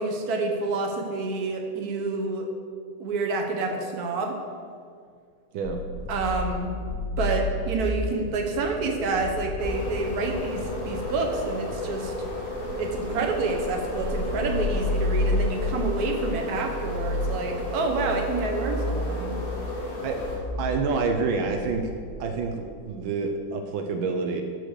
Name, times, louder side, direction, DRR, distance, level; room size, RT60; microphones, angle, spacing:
voice 1, 0.0-2.5 3.0-4.3 6.1-6.7 7.2-12.1 12.8-19.4, right 3 dB, 55° right, 2 dB, 1.5 m, -28 dB
sound 1, 5.6-22.4, left 2 dB, 50° left, 1.6 m, -32 dB
sound 2, 9.6-20.4, left 1 dB, 25° left, 2.6 m, -34 dB
voice 2, 20.6-21.9 22.2-24.4, right 4 dB, 80° right, 4 dB, 1.6 m, -27 dB
12.0 x 4.9 x 6.6 m, 2.1 s
omnidirectional pair, 2.2 m